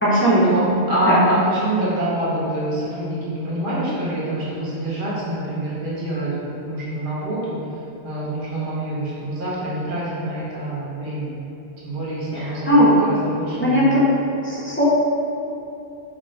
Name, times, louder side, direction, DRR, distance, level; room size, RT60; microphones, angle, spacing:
voice 1, 0.0-0.7 1.1-1.2 12.3-13.0 13.6-14.1 14.4-14.9, equal, 20° left, -9 dB, 0.3 m, -17 dB
voice 2, 0.9-7.6 8.0-11.3 11.8-14.0, right 1 dB, 55° right, -8 dB, 0.9 m, -26 dB
2.6 x 2.5 x 3.1 m, 2.8 s
omnidirectional pair, 1.1 m